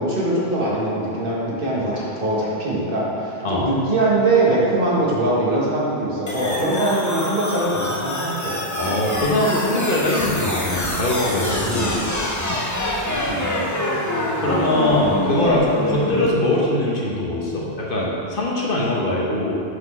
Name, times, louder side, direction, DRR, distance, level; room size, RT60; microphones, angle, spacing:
voice 1, 0.0-8.6 11.6-12.0 13.2-13.4, right 2 dB, 55° right, -6 dB, 1.7 m, -22 dB
sound 1, 6.3-16.3, left 1 dB, 20° left, 0.6 m, -25 dB
voice 2, 8.8-12.0 14.4-19.6, left 1 dB, 55° left, -4 dB, 1.1 m, -22 dB
6.4 x 4.3 x 5.5 m, 2.5 s
omnidirectional pair, 1.1 m